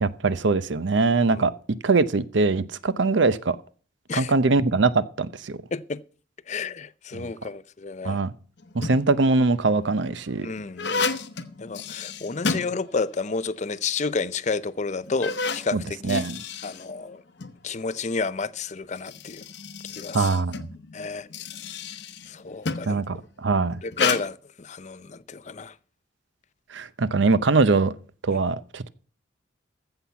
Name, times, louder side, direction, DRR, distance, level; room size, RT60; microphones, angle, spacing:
voice 1, 0.0-1.5 1.8-3.6 4.1-5.6 7.1-7.3 8.0-8.3 8.7-10.5 15.7-16.4 20.1-20.7 22.9-23.8 26.7-28.0 28.2-28.9, right 3 dB, 70° right, 0.7 m, -22 dB
voice 2, 5.7-6.0 6.5-8.2 10.4-11.1 11.6-16.3 16.6-17.2 17.6-19.4 20.0-20.2 20.9-21.3 22.3-23.0 23.8-25.8, left 4 dB, 35° left, 0.5 m, -30 dB
sound 1, 8.6-9.2 9.9-13.3 13.6-13.7 14.4-14.5 15.0-17.6 18.8-23.0 23.9-24.2, left 4 dB, 60° left, 0.9 m, -32 dB
14.5 x 5.8 x 6.9 m
head